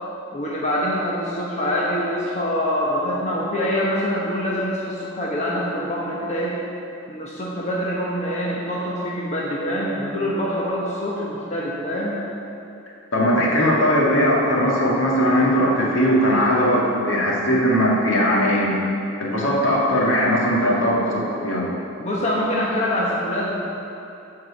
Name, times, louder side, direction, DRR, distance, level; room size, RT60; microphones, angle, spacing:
voice 1, 0.3-6.6 7.1-12.2 22.0-23.5, equal, 35° left, -5 dB, 1.0 m, -25 dB
voice 2, 13.1-18.8 19.2-21.7, equal, 70° left, -4 dB, 1.8 m, -19 dB
9.6 x 4.8 x 7.0 m, 2.8 s
head